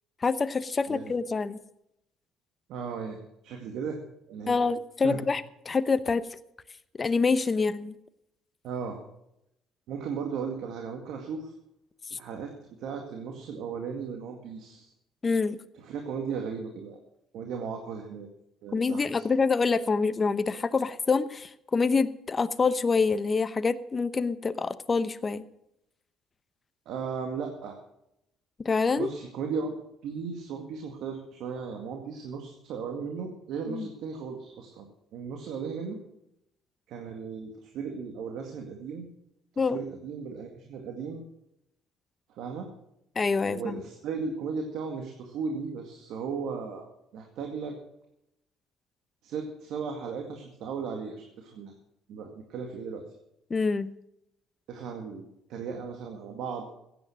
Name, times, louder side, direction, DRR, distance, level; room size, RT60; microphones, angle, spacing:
voice 1, 0.2-1.6 4.5-5.4 5.7-6.2 7.0-7.9 15.2-15.6 18.7-25.5 28.6-29.1 33.7-33.9 39.6-39.8 43.2-43.8 53.5-53.9, left 4 dB, 30° left, 14 dB, 0.8 m, -26 dB
voice 2, 2.7-3.2 3.4-4.0 4.3-4.6 5.0-5.2 8.6-9.0 9.9-11.5 12.1-12.5 12.8-14.9 15.7-17.0 17.3-18.3 18.6-19.2 26.9-27.8 29.0-29.7 30.0-34.9 35.1-36.0 36.9-39.1 39.5-41.2 42.3-42.7 43.4-46.9 47.1-47.8 49.2-51.7 52.1-53.0 54.7-56.7, right 5 dB, 75° right, 3 dB, 2.1 m, -36 dB
16.0 x 9.3 x 6.4 m, 0.82 s
cardioid pair, 110°, 0 cm